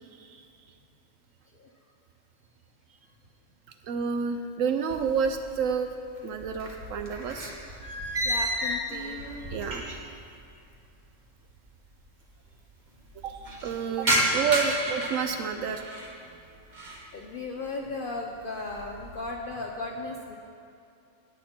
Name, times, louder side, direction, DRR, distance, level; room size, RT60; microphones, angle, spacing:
voice 1, 3.8-5.9 6.2-7.5 9.5-10.1 13.2-15.8, right 6 dB, 80° right, 7 dB, 1.0 m, -30 dB
sound 1, 4.9-5.8 6.1-10.2 10.4-10.5 11.4-11.5 11.7-11.8 12.0-12.5 12.9-16.1 16.6-17.1 17.5-17.9 18.3-19.2, equal, 35° right, 1.6 m, -31 dB
voice 2, 8.2-9.2 14.5-14.6 17.1-20.3, left 3 dB, 50° left, 0 dB, 0.8 m, -36 dB
19.0 x 8.3 x 4.4 m, 2.6 s
omnidirectional pair, 1.4 m